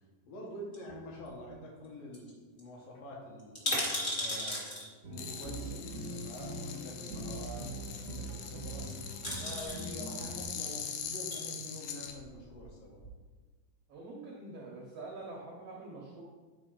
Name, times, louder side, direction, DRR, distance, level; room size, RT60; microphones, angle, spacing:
voice 1, 0.3-2.3 2.6-3.6 4.1-8.9 9.4-13.0, equal, 70° left, -3 dB, 3.1 m, -46 dB
sound 1, 0.7-1.5 1.8-1.9 2.1-2.3 2.6-2.7 3.4-4.8 6.0-6.1 8.7-8.9 9.2-9.9 11.0-11.4 12.1-12.8 13.0-13.1, left 1 dB, 40° left, 0.7 m, -36 dB
sound 2, 5.0-10.4, right 1 dB, 65° right, 1.0 m, -42 dB
sound 3, 5.1-12.1, left 7 dB, 90° left, 2.6 m, -43 dB
voice 2, 13.9-16.2, right 2 dB, 85° right, -3 dB, 1.3 m, -45 dB
9.7 x 4.6 x 3.8 m, 1.4 s
omnidirectional pair, 4.2 m